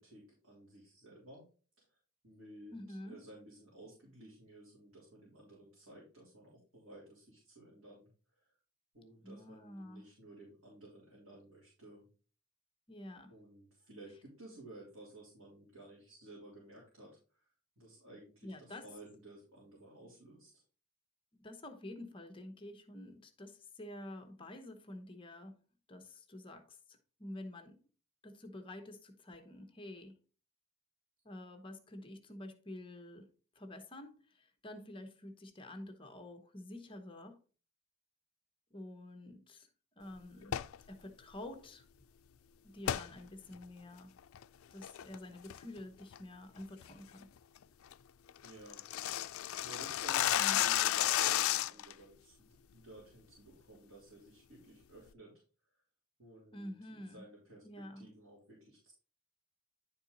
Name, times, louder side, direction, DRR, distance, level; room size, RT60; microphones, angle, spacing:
voice 1, 0.0-1.5 1.8-1.9 2.2-8.5 8.9-12.1 13.3-17.5 17.8-20.6 48.4-48.9 49.6-55.3 55.7-55.8 56.2-58.9, right 1 dB, 80° right, 3.4 m, -55 dB
voice 2, 2.7-3.2 9.2-10.0 12.9-13.3 18.4-18.9 21.3-25.6 25.9-27.8 28.2-30.2 31.2-37.4 38.7-39.7 40.0-40.6 40.9-41.8 42.6-44.1 44.7-47.3 50.3-50.7 56.5-57.2 57.6-58.1, left 1 dB, 25° left, 1.0 m, -49 dB
sound 1, 40.4-40.8 42.9-43.1 43.5-43.6 44.2-44.4 44.8-45.2 45.5-45.8 46.1-46.2 46.6-46.9 47.2-47.3 47.6-47.7 47.9-48.0 48.3-51.9, left 12 dB, 75° left, 0.4 m, -32 dB
10.5 x 4.4 x 4.0 m
head